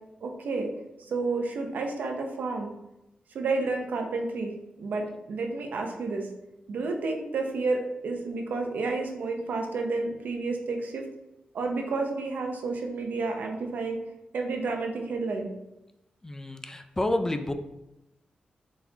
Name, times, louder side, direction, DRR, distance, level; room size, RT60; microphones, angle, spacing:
voice 1, 0.2-0.7 1.1-2.7 3.3-6.3 6.7-11.0 11.5-14.0 14.3-15.5, right 3 dB, 80° right, 3 dB, 0.6 m, -30 dB
voice 2, 16.2-17.5, left 1 dB, 20° left, 8 dB, 0.4 m, -29 dB
4.1 x 4.0 x 2.8 m, 0.91 s
cardioid pair, 80°, 3 cm